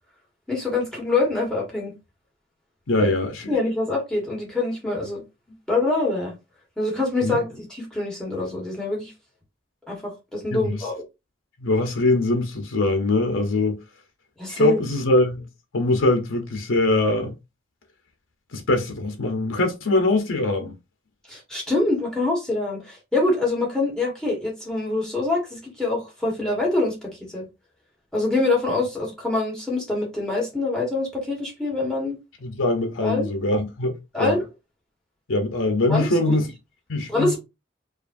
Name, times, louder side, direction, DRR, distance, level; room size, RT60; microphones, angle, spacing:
voice 1, 0.5-1.9 3.0-3.1 3.5-5.2 5.7-6.3 6.8-9.1 9.9-11.0 14.4-14.8 21.3-27.4 28.1-32.2 33.0-33.3 34.1-34.4 35.9-36.3 37.1-37.4, left 2 dB, 5° left, 1.3 m, -25 dB
voice 2, 2.9-3.6 7.2-7.4 10.5-10.9 11.6-13.8 14.6-15.5 15.7-17.3 18.5-20.7 32.4-33.9 34.2-34.4 35.3-36.5 36.9-37.4, left 2 dB, 90° left, 0.8 m, -22 dB
4.8 x 2.5 x 2.6 m
head